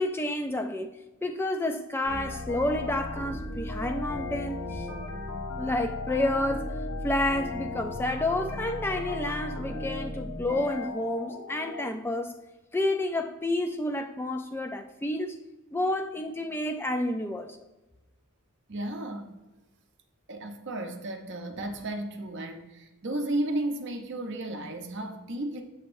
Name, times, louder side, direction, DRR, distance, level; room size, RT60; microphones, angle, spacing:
voice 1, 0.0-4.9 5.6-6.7 7.0-12.4 12.7-15.4 15.7-17.6, left 1 dB, 10° left, 0.3 m, -30 dB
sound 1, 2.0-11.9, left 2 dB, 65° left, 1.3 m, -36 dB
voice 2, 18.7-19.3 20.3-25.6, right 1 dB, 50° right, 0.7 m, -33 dB
7.2 x 6.4 x 2.5 m
head